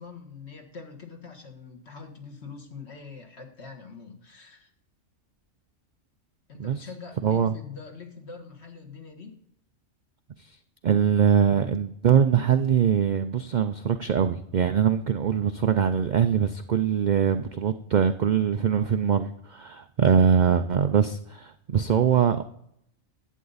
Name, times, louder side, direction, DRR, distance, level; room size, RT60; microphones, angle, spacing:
voice 1, 0.0-4.7 6.5-9.4, left 5 dB, 55° left, 4 dB, 1.8 m, -43 dB
voice 2, 7.2-7.5 10.8-22.4, right 8 dB, 75° right, 9 dB, 0.4 m, -22 dB
11.0 x 8.2 x 4.0 m, 0.72 s
omnidirectional pair, 1.4 m